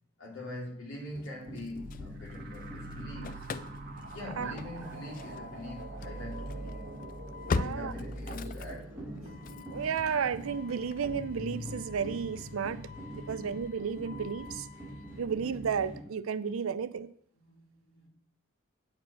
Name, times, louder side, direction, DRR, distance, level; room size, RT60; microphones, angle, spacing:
voice 1, 0.2-3.7 4.1-6.9 7.6-8.9 13.2-13.3 17.4-18.1, left 1 dB, 70° left, 3.2 m, -43 dB
sound 1, 0.9-16.0, right 1 dB, 10° right, 2.3 m, -46 dB
Engine starting / Slam, 1.2-2.6 2.9-16.0, left 4 dB, 40° left, 0.3 m, -42 dB
sound 2, 1.7-13.1, right 1 dB, 45° right, 1.1 m, -45 dB
voice 2, 7.5-7.9 8.3-8.8 9.7-12.8 13.1-14.7 15.2-17.1, right 6 dB, 75° right, 0.5 m, -33 dB
8.5 x 4.9 x 7.1 m
head